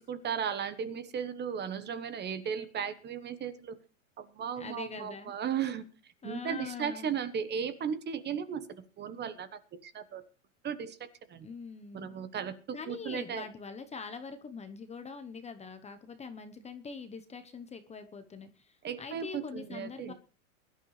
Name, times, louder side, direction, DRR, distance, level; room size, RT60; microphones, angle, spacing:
voice 1, 0.0-3.7 4.2-5.8 6.2-8.7 9.0-10.2 10.6-11.0 11.3-11.5 11.9-12.5 12.9-13.4 18.8-20.1, right 7 dB, 25° right, 12 dB, 1.2 m, -36 dB
voice 2, 4.6-5.3 6.2-7.2 11.4-12.2 12.7-20.1, left 5 dB, 15° left, 8 dB, 1.0 m, -43 dB
22.5 x 11.0 x 3.3 m, 0.37 s
hypercardioid pair, 120°, 39 cm